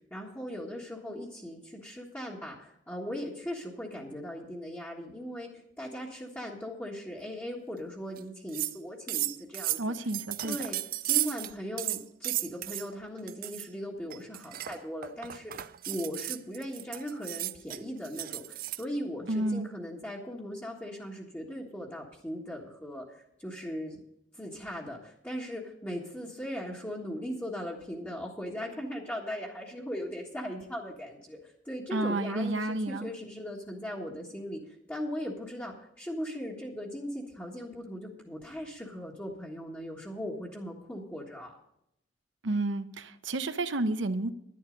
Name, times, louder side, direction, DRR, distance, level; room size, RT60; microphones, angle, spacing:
voice 1, 0.1-9.8 10.4-24.0 24.3-41.6, equal, 10° left, -4 dB, 1.6 m, -39 dB
sound 1, 8.2-8.3 8.5-8.8 9.1-11.5 11.8-12.9 13.3-13.7 14.1-18.8, right 15 dB, 50° right, 0.4 m, -34 dB
voice 2, 9.8-10.6 19.3-19.7 31.9-33.1 42.4-44.3, right 2 dB, 85° right, 10 dB, 0.8 m, -30 dB
11.0 x 11.0 x 5.2 m, 0.77 s
head